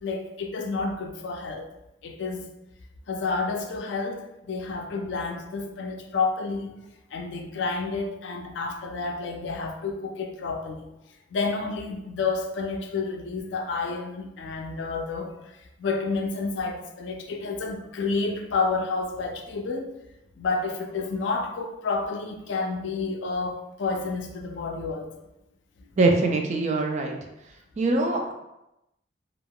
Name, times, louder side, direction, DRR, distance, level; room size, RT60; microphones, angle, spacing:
voice 1, 0.0-1.7 2.0-2.5 3.1-6.8 7.1-10.9 11.3-15.3 15.8-19.9 20.4-25.1, left 4 dB, 70° left, 4 dB, 0.4 m, -30 dB
voice 2, 26.0-27.2 27.8-28.3, right 2 dB, 40° right, 2 dB, 0.4 m, -23 dB
3.5 x 2.4 x 2.2 m, 0.90 s
head